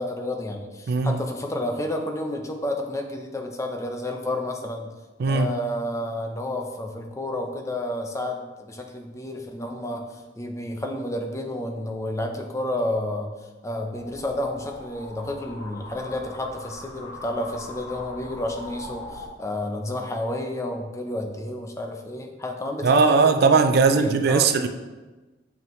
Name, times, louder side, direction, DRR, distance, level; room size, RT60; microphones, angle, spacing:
voice 1, 0.0-4.9 5.3-13.3 13.6-23.5 23.8-24.5, left 1 dB, 15° left, 3 dB, 0.6 m, -30 dB
voice 2, 0.9-1.2 5.2-5.5 22.8-24.7, right 4 dB, 55° right, 8 dB, 0.4 m, -19 dB
sound 1, 13.9-19.3, left 1 dB, 85° left, 1.3 m, -41 dB
7.2 x 5.5 x 3.1 m, 1.2 s
head